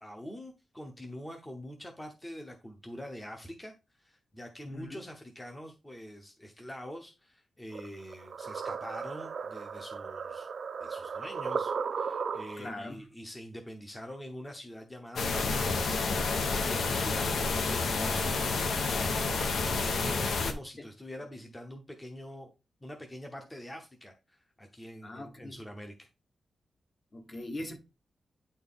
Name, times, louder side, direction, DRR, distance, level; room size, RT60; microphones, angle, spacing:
voice 1, 0.0-10.5 10.8-16.3 16.6-19.4 19.8-22.5 22.8-26.1, equal, 10° left, 0.9 m, -45 dB
voice 2, 4.6-5.0 12.6-13.1 20.8-20.9 25.0-25.6 27.1-27.8, left 1 dB, 30° left, 1.1 m, -41 dB
sound 1, 7.7-12.8, right 6 dB, 50° right, 0.5 m, -36 dB
sound 2, 15.2-20.5, left 4 dB, 70° left, 1.0 m, -29 dB
9.4 x 4.3 x 3.6 m
wide cardioid pair, 180°, 0 cm